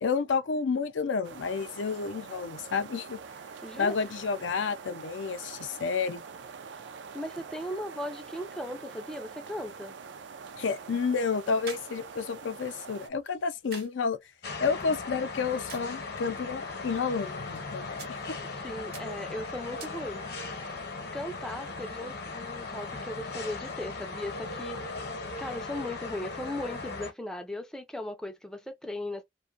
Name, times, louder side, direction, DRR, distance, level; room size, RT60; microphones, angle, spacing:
voice 1, 0.0-3.2 3.8-6.2 10.5-14.2 14.6-18.4, left 5 dB, 90° left, 0.5 m, -30 dB
sound 1, 1.2-13.1, right 5 dB, 70° right, 0.4 m, -45 dB
voice 2, 3.6-4.0 7.1-9.9 18.5-20.7 21.1-25.0 25.4-29.2, left 1 dB, 5° left, 0.3 m, -38 dB
sound 2, 10.4-20.4, right 6 dB, 55° right, 0.8 m, -52 dB
sound 3, 14.4-27.1, left 3 dB, 55° left, 0.8 m, -38 dB
2.5 x 2.2 x 2.3 m
head